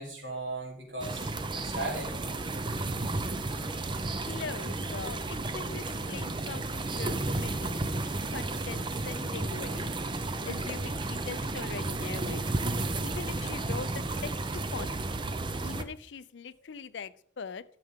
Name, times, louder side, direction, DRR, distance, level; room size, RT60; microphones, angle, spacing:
voice 1, 0.0-2.1, right 2 dB, 70° right, -2 dB, 3.9 m, -37 dB
sound 1, 1.0-15.8, right 2 dB, 25° right, 0.6 m, -33 dB
voice 2, 4.3-5.2 5.5-7.8 8.3-9.9 10.4-12.4 13.0-15.0 15.6-17.6, left 5 dB, 65° left, 16 dB, 0.5 m, -41 dB
13.0 x 6.8 x 3.6 m, 0.62 s
head